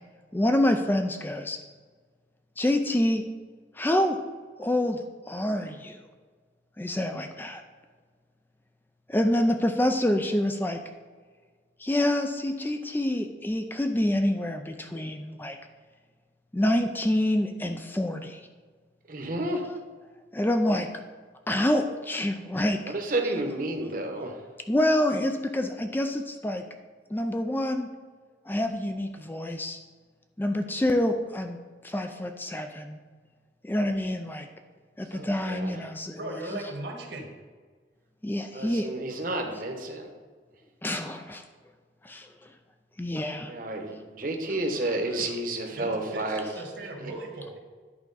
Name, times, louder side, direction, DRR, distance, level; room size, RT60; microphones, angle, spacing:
voice 1, 0.3-1.6 2.6-3.2 3.7-4.2 4.6-5.0 5.3-6.0 6.8-7.6 9.1-10.8 11.8-15.6 16.5-18.4 20.3-20.9 21.5-22.8 24.7-26.6 27.1-27.9 28.5-29.8 30.4-31.6 31.8-33.0 33.6-34.5 35.0-36.6 38.2-38.9 40.8-41.4 42.0-42.5 43.0-43.5, left 1 dB, 10° left, 5 dB, 0.3 m, -27 dB
voice 2, 19.1-19.6 22.8-24.4 35.4-35.8 38.5-40.1 43.5-46.4 47.0-47.1, right 1 dB, 45° right, 3 dB, 1.0 m, -31 dB
voice 3, 36.1-37.3 45.7-47.6, right 2 dB, 70° right, 2 dB, 1.5 m, -38 dB
10.5 x 4.5 x 4.0 m, 1.5 s
head